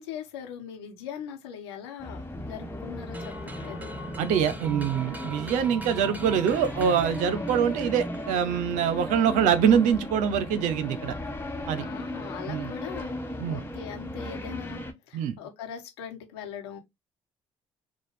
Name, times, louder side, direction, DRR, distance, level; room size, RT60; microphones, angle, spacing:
voice 1, 0.0-4.0 11.8-13.2 13.5-14.8 15.1-16.8, left 8 dB, 90° left, 1.1 m, -40 dB
sound 1, 2.0-14.9, left 1 dB, 15° left, 1.2 m, -36 dB
sound 2, 3.1-8.7, right 1 dB, 10° right, 1.0 m, -43 dB
voice 2, 4.2-11.1 11.7-11.9 12.5-12.7 13.4-13.6 15.1-15.3, right 8 dB, 75° right, 0.7 m, -24 dB
5.0 x 2.2 x 3.5 m
hypercardioid pair, 55°, 13 cm